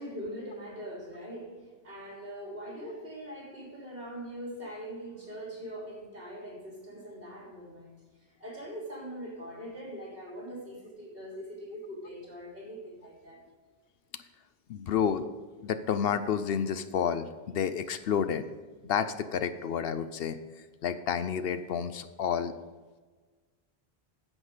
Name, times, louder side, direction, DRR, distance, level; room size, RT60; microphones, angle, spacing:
voice 1, 0.0-8.0 8.4-13.4, equal, 60° right, -4 dB, 3.7 m, -42 dB
voice 2, 14.7-15.3 15.6-18.4 18.8-20.4 20.8-22.5, left 7 dB, 70° left, 11 dB, 0.8 m, -30 dB
9.6 x 7.6 x 5.0 m, 1.4 s
omnidirectional pair, 1.1 m